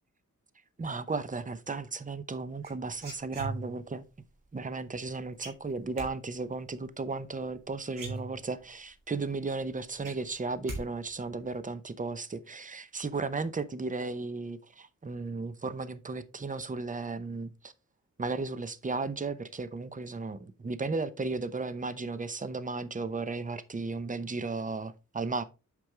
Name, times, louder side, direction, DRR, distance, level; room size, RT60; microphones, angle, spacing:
voice 1, 0.8-4.0 4.5-17.7 18.2-25.4, right 3 dB, 25° right, 0.7 m, -35 dB
sound 1, 2.6-3.9 5.4-6.1 7.5-7.6 7.9-8.7 9.1-9.2 9.6-10.8 11.1-11.5, right 2 dB, 80° right, 3.4 m, -40 dB
7.9 x 5.3 x 3.4 m
wide cardioid pair, 80°, 32 cm